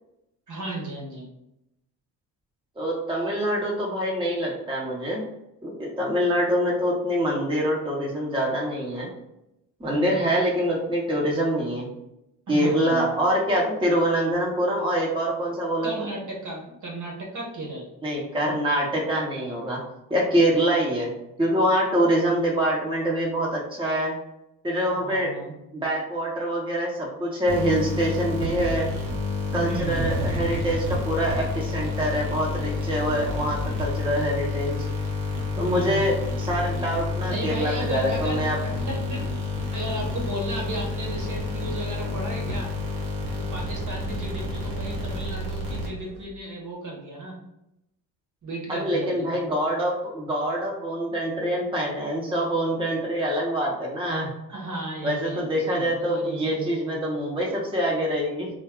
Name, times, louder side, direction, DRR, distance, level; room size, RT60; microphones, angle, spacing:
voice 1, 0.5-1.2 9.9-10.3 12.5-13.1 15.8-17.9 24.9-25.5 29.5-30.5 35.6-36.1 37.2-39.2 39.7-42.7 43.5-47.4 48.4-49.3 54.5-56.9, right 1 dB, 45° right, -2 dB, 1.1 m, -34 dB
voice 2, 2.8-5.2 5.6-9.1 9.8-11.9 12.5-16.1 18.0-19.8 20.1-21.1 21.4-24.1 24.6-25.3 25.7-28.9 29.5-34.9 35.6-38.6 48.7-54.3 55.0-58.5, equal, 10° right, -3 dB, 0.9 m, -25 dB
sound 1, 27.5-46.3, left 3 dB, 65° right, 1.1 m, -29 dB
2.3 x 2.2 x 3.6 m, 0.85 s
hypercardioid pair, 50°, 44 cm